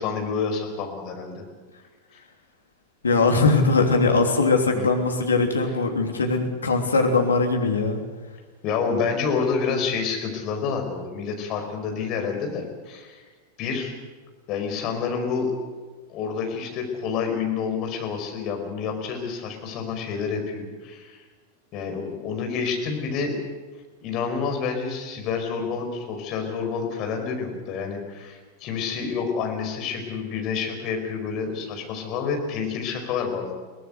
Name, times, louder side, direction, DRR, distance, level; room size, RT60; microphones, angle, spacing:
voice 1, 0.0-1.4 4.7-4.9 8.6-13.2 13.6-13.9 14.5-15.5 16.1-21.2 21.7-23.3 24.0-33.5, left 5 dB, 40° left, 3 dB, 5.1 m, -28 dB
voice 2, 3.0-8.0, left 3 dB, 75° left, 3 dB, 3.2 m, -21 dB
22.5 x 18.0 x 8.1 m, 1.4 s
figure-of-eight pair, 90°, 0 cm